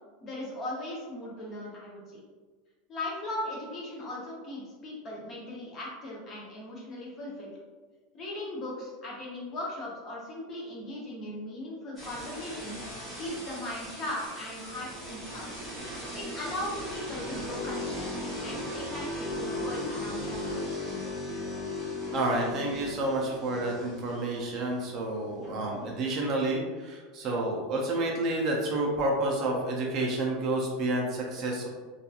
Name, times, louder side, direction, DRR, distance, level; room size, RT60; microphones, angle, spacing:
voice 1, 0.0-2.2 2.9-7.5 8.1-12.8 13.2-15.5 16.1-20.8 25.4-25.6, left 1 dB, 25° left, -4 dB, 0.7 m, -38 dB
sound 1, 12.0-26.5, left 1 dB, 5° left, 1.1 m, -37 dB
voice 2, 22.1-31.7, right 2 dB, 35° right, -1 dB, 0.4 m, -29 dB
2.8 x 2.3 x 2.3 m, 1.4 s
supercardioid pair, 165°, 0 cm